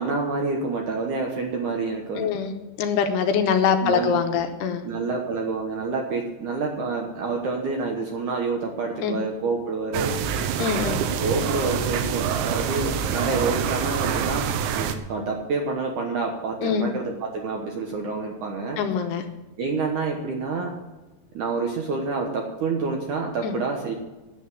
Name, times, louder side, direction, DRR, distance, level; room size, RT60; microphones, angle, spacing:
voice 1, 0.0-2.3 3.8-4.2 4.8-10.2 11.2-14.5 14.8-18.8 19.6-20.7 21.3-23.9, right 4 dB, 65° right, 1 dB, 2.1 m, -28 dB
voice 2, 2.2-4.9 9.0-9.2 10.6-11.0 16.6-16.9 18.8-19.2 23.4-23.5, left 7 dB, 75° left, 6 dB, 2.9 m, -24 dB
sound 1, 9.9-15.0, right 8 dB, 90° right, 3.2 m, -26 dB
10.0 x 8.2 x 9.4 m, 1.1 s
omnidirectional pair, 5.1 m